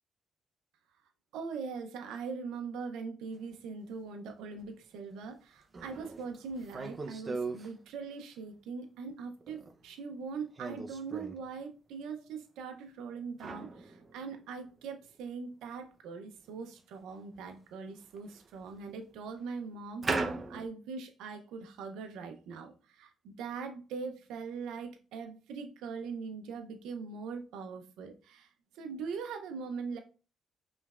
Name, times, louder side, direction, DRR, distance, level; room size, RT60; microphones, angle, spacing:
voice 1, 1.3-30.0, right 5 dB, 90° right, 5 dB, 0.6 m, -41 dB
sound 1, 3.4-3.5 4.6-4.7 5.1-5.2 5.7-7.7 9.1-9.8 10.6-11.4 13.4-14.8 15.1-15.2 16.6-16.7 17.3-17.5 18.0-18.9 20.0-20.7, right 3 dB, 35° right, 0.6 m, -38 dB
5.2 x 3.2 x 2.4 m, 0.35 s
cardioid pair, 90°, 0 cm